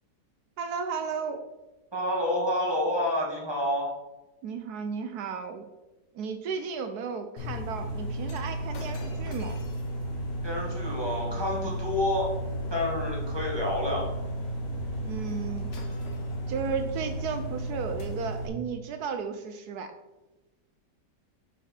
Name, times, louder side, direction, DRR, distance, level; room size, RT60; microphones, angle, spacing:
voice 1, 0.6-1.4 4.4-5.7 6.1-9.6 15.0-15.7 16.5-19.9, right 6 dB, 75° right, 8 dB, 1.1 m, -34 dB
voice 2, 1.9-3.9 10.4-12.3 12.7-14.1, left 1 dB, 15° right, -3 dB, 1.7 m, -28 dB
sound 1, 7.4-18.5, right 1 dB, 90° left, 1.8 m, -33 dB
Shatter, 8.3-12.6 15.3-15.4 15.7-17.2 18.0-18.1, left 3 dB, 50° left, 1.1 m, -52 dB
6.2 x 5.5 x 4.2 m, 1.1 s
omnidirectional pair, 1.8 m